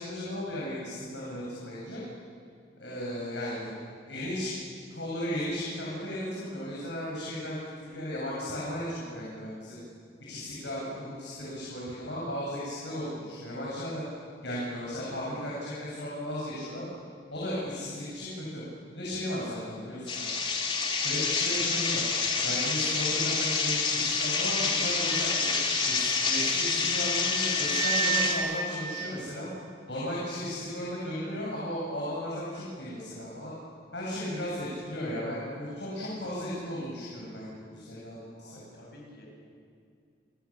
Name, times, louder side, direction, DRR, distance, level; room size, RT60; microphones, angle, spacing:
voice 1, 0.0-2.0 2.8-3.7 4.1-4.5 4.9-9.8 10.3-14.0 14.4-16.8 17.3-18.6 18.9-20.3 21.0-22.0 22.4-25.5 25.9-29.5 29.9-33.6 33.9-38.6, equal, 85° left, -5 dB, 7.0 m, -35 dB
sound 1, 20.1-28.3, left 4 dB, 30° left, 2.7 m, -28 dB
Wind instrument woodwind instrument, 25.1-28.6, right 6 dB, 50° right, 3.6 m, -33 dB
voice 2, 38.4-39.3, left 1 dB, 60° left, -1 dB, 7.6 m, -51 dB
29.5 x 20.0 x 7.3 m, 2.3 s
head